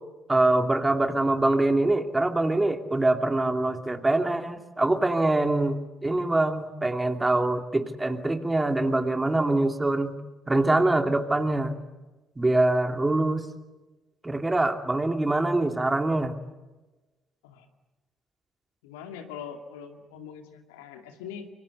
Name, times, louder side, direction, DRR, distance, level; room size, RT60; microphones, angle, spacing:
voice 1, 0.3-10.1 10.5-11.8 12.4-13.4 14.2-16.3, right 2 dB, 15° right, 6 dB, 2.6 m, -24 dB
voice 2, 18.8-21.5, left 7 dB, 75° left, 5 dB, 2.3 m, -42 dB
25.0 x 24.5 x 8.1 m, 1.1 s
figure-of-eight pair, 45°, 0 cm